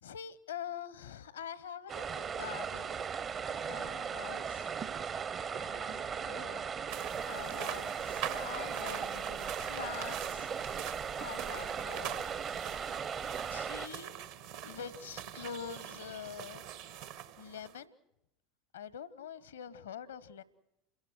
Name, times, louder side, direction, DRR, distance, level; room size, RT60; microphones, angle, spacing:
voice 1, 0.0-3.0 3.4-4.7 5.5-6.7 7.2-12.3 13.5-14.2 14.6-17.9 18.7-20.4, left 8 dB, 75° left, 18 dB, 1.1 m, -45 dB
sound 1, 1.9-13.9, right 6 dB, 35° right, 0.7 m, -38 dB
sound 2, 6.9-17.8, right 11 dB, 65° right, 1.2 m, -44 dB
28.5 x 16.5 x 7.8 m, 0.86 s
figure-of-eight pair, 75°, 0 cm